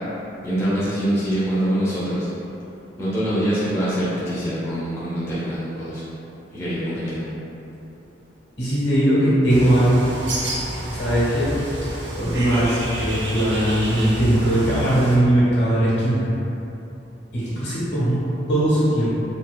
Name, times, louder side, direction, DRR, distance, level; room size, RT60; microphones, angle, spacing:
voice 1, 0.4-2.3 3.0-6.0 6.5-7.2, equal, 15° left, -11 dB, 0.8 m, -24 dB
voice 2, 8.6-10.0 10.9-11.5 12.1-16.2 17.3-18.2 18.5-19.1, right 1 dB, 70° left, -10 dB, 1.5 m, -19 dB
Bird, 9.5-15.1, right 1 dB, 80° right, 0.8 m, -29 dB
4.3 x 3.8 x 2.2 m, 2.9 s
head